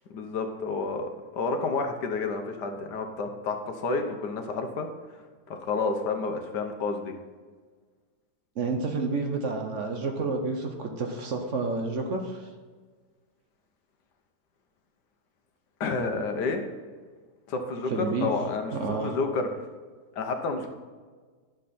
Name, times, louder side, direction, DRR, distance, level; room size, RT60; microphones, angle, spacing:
voice 1, 0.1-5.2 5.5-7.1 15.8-16.6 17.5-19.5 20.2-20.7, left 4 dB, 80° left, 5 dB, 1.6 m, -30 dB
voice 2, 8.6-12.5 17.9-18.3 18.8-19.1, right 3 dB, 50° right, 4 dB, 1.1 m, -30 dB
11.5 x 6.5 x 4.3 m, 1.5 s
omnidirectional pair, 1.8 m